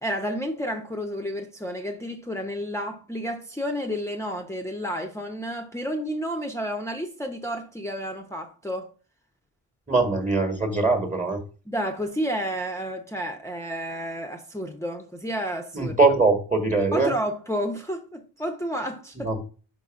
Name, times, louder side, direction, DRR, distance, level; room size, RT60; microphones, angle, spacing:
voice 1, 0.0-8.9 11.7-16.0 16.9-19.3, equal, 5° left, 0.8 m, -31 dB
voice 2, 9.9-11.4 15.7-17.1 19.2-19.4, right 3 dB, 15° right, 1.4 m, -22 dB
5.3 x 4.1 x 5.1 m
cardioid pair, 85°, 42 cm